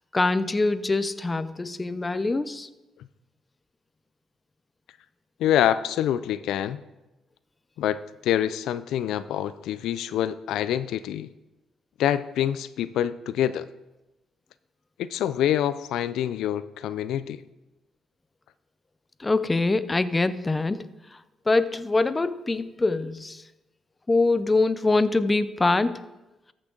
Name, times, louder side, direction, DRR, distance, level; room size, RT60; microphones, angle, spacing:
voice 1, 0.1-2.7 19.2-20.9 21.5-23.4 24.1-26.0, left 3 dB, 20° left, 14 dB, 0.5 m, -24 dB
voice 2, 5.4-6.8 7.8-11.3 12.0-13.7 15.0-17.4, left 11 dB, 80° left, 15 dB, 0.3 m, -26 dB
13.5 x 6.0 x 3.9 m, 1.0 s
cardioid pair, 90°, 0 cm